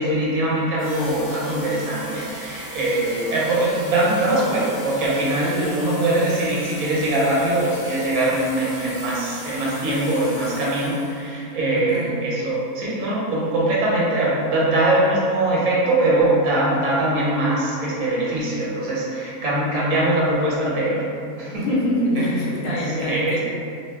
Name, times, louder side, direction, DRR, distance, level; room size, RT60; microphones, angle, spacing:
voice 1, 0.0-21.1 21.4-21.6 22.1-22.2 22.7-23.4, right 1 dB, 65° right, -6 dB, 1.1 m, -22 dB
sound 1, 0.8-11.3, equal, 30° right, 1.1 m, -38 dB
voice 2, 11.7-12.2 21.5-23.4, left 1 dB, 75° left, -4 dB, 1.0 m, -25 dB
2.6 x 2.1 x 3.3 m, 2.5 s
omnidirectional pair, 1.5 m